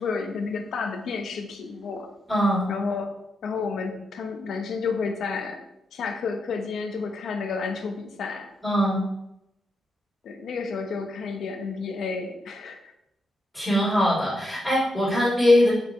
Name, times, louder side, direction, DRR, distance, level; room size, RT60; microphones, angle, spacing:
voice 1, 0.0-2.1 2.7-5.6 5.9-8.5 10.2-12.9, left 5 dB, 75° left, 5 dB, 1.1 m, -31 dB
voice 2, 2.3-2.7 8.6-9.0 13.5-15.7, left 1 dB, 10° left, -7 dB, 2.9 m, -21 dB
6.6 x 5.0 x 4.6 m, 0.84 s
cardioid pair, 130°, 0 cm